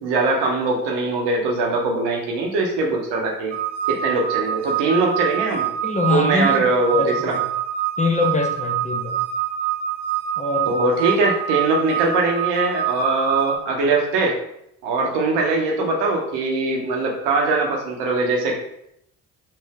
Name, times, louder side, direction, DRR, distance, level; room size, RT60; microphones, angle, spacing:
voice 1, 0.0-3.5 3.9-5.7 6.1-7.4 10.7-14.4 14.8-18.6, right 3 dB, 65° right, 0 dB, 1.0 m, -21 dB
sound 1, 3.5-13.6, right 10 dB, 35° right, 0.6 m, -25 dB
voice 2, 5.8-6.7 6.9-7.4 8.0-9.2 10.4-10.6, left 3 dB, 15° left, 0 dB, 0.7 m, -23 dB
3.2 x 2.6 x 3.4 m, 0.75 s
figure-of-eight pair, 45°, 45 cm